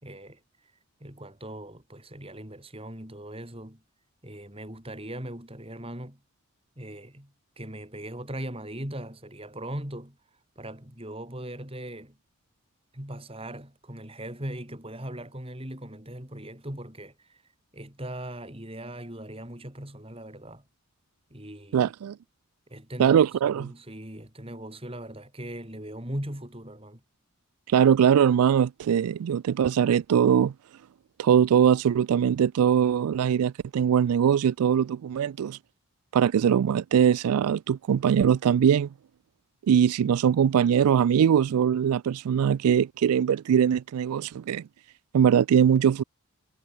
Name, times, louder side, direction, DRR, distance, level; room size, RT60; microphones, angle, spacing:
voice 1, 0.0-0.4 1.0-3.8 4.2-6.2 6.8-10.2 10.6-12.2 12.9-17.4 17.7-20.7 21.3-21.9 22.7-23.2 23.4-27.0, right 1 dB, 25° right, 4.1 m, -39 dB
voice 2, 21.7-22.2 23.0-23.7 27.7-30.5 31.2-35.6 36.1-38.9 39.7-44.6 45.1-46.0, right 8 dB, 85° right, 0.3 m, -21 dB
head